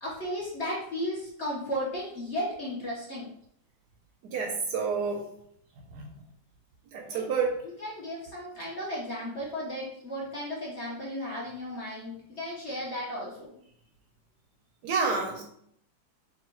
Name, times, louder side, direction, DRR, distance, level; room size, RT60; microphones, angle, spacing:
voice 1, 0.0-3.3 7.1-7.2 7.6-13.5, equal, 50° left, -5 dB, 0.9 m, -35 dB
voice 2, 4.2-5.3 5.9-6.1 6.9-7.6 14.8-15.4, right 5 dB, 70° right, 2 dB, 1.1 m, -29 dB
3.8 x 2.5 x 4.3 m, 0.69 s
omnidirectional pair, 2.0 m